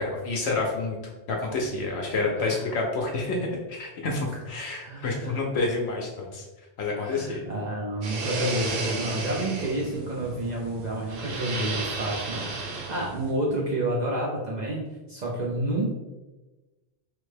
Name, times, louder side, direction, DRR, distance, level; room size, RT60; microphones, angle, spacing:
voice 1, 0.0-6.4 6.8-7.5, left 3 dB, 75° left, -1 dB, 0.8 m, -29 dB
voice 2, 2.3-2.7 4.3-4.4 4.8-5.4 7.0-15.9, right 1 dB, 55° right, -3 dB, 0.5 m, -30 dB
sound 1, 8.0-13.3, right 3 dB, 75° right, 0.9 m, -33 dB
3.3 x 2.1 x 3.2 m, 1.1 s
omnidirectional pair, 1.1 m